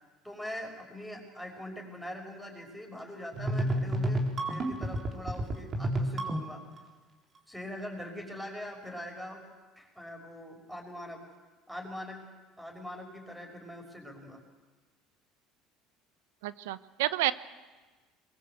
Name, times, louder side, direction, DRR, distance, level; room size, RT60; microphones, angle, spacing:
voice 1, 0.2-6.6 7.5-9.5 9.8-11.2 11.7-12.3 12.6-14.4, left 1 dB, ahead, 2 dB, 6.3 m, -42 dB
sound 1, 3.3-6.8, right 1 dB, 35° right, 4.0 m, -30 dB
voice 2, 16.4-17.3, right 16 dB, 90° right, 15 dB, 0.9 m, -29 dB
23.0 x 22.0 x 8.3 m, 1.3 s
supercardioid pair, 100°, 0 cm